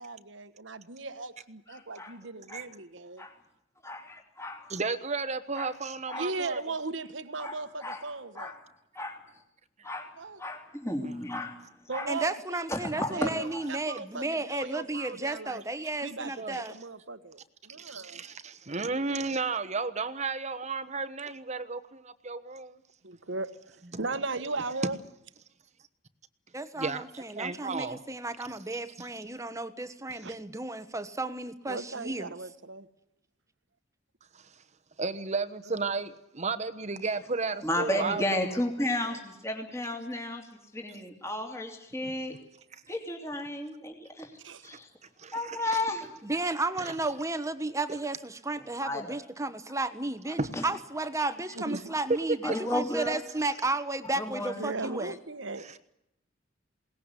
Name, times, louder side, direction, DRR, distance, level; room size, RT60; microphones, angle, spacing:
voice 1, 0.0-3.2 6.1-8.5 10.2-10.4 11.9-15.6 16.0-18.3 23.0-25.0 30.2-30.3 31.7-32.9 35.6-35.8 38.4-39.2 42.0-42.1 44.4-44.7 51.5-51.9 54.4-55.7, right 3 dB, 70° right, 1.4 m, -38 dB
voice 2, 3.8-4.7 5.5-5.7 6.1-6.2 7.4-7.5 7.8-8.0 8.3-8.5 8.9-9.2 9.8-10.1 10.4-11.5 11.9-12.1 12.7-13.6 37.6-40.5 40.7-42.4 42.9-44.3 44.6-44.9 45.3-46.1 48.8-49.2 50.6-50.7 52.4-53.2 54.2-54.9, left 1 dB, 15° left, 3.1 m, -33 dB
voice 3, 4.7-6.6 11.0-11.2 16.4-16.6 17.8-22.8 26.8-28.0 34.3-34.4 35.0-38.4 42.7-42.8 44.7-44.8 45.2-45.8 46.8-47.0 50.4-50.6 51.7-51.8 52.1-52.2 52.5-52.6 55.6-55.8, right 4 dB, 35° right, 1.2 m, -33 dB
voice 4, 12.1-16.7 26.5-32.3 46.2-55.2, right 2 dB, 15° right, 1.2 m, -33 dB
21.5 x 19.0 x 9.9 m
head